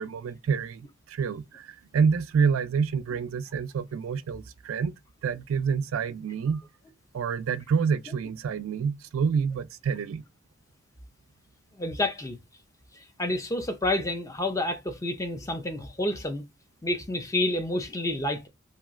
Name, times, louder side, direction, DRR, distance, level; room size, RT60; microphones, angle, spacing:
voice 1, 0.0-4.9 5.2-6.6 7.1-10.2, right 6 dB, 85° right, 0.3 m, -27 dB
voice 2, 11.7-12.4 12.9-16.4 16.8-18.5, left 1 dB, 15° left, 0.4 m, -29 dB
2.9 x 2.4 x 2.4 m
head